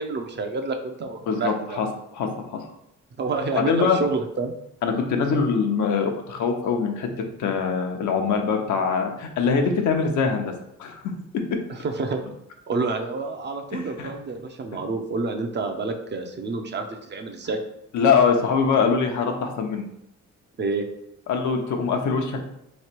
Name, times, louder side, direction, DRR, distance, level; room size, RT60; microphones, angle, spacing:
voice 1, 0.0-1.8 3.2-4.5 11.8-12.2 12.7-17.6 20.6-20.8, right 3 dB, 35° right, 5 dB, 0.6 m, -28 dB
voice 2, 1.3-2.6 3.5-4.0 4.8-7.1 7.4-10.5 10.8-11.0 11.3-11.4 13.7-14.1 17.9-19.8 21.3-22.4, left 5 dB, 75° left, 3 dB, 0.8 m, -23 dB
3.2 x 2.9 x 4.4 m, 0.80 s
cardioid pair, 90°, 30 cm